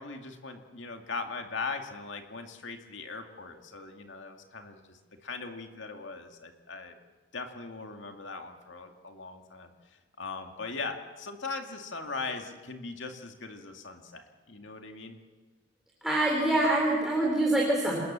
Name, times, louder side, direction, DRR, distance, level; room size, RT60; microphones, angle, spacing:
voice 1, 0.0-6.9 7.3-15.2, left 4 dB, 65° left, 4 dB, 2.3 m, -40 dB
voice 2, 16.0-18.0, right 1 dB, ahead, -2 dB, 3.7 m, -25 dB
27.0 x 20.5 x 7.5 m, 1.3 s
head